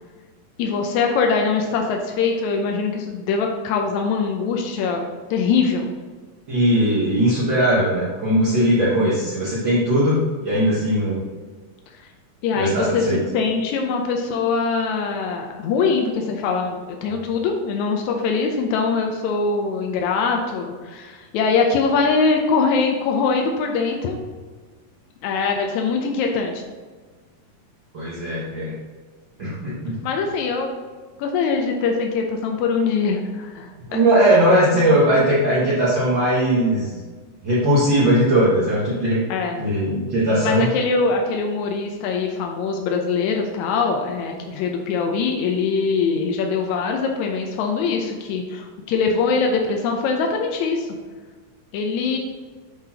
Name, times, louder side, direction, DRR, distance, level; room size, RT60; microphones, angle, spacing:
voice 1, 0.6-5.0 5.3-5.9 12.4-13.0 13.3-24.2 25.2-26.6 30.0-30.7 31.2-34.0 39.3-39.6 40.4-50.9 51.7-52.2, left 4 dB, 85° left, 2 dB, 1.7 m, -22 dB
voice 2, 6.5-11.2 12.5-13.2 27.9-28.7 29.4-30.0 33.9-36.9 37.4-39.2 39.6-40.7, right 1 dB, 85° right, -8 dB, 1.0 m, -19 dB
9.0 x 3.9 x 2.8 m, 1.4 s
omnidirectional pair, 4.0 m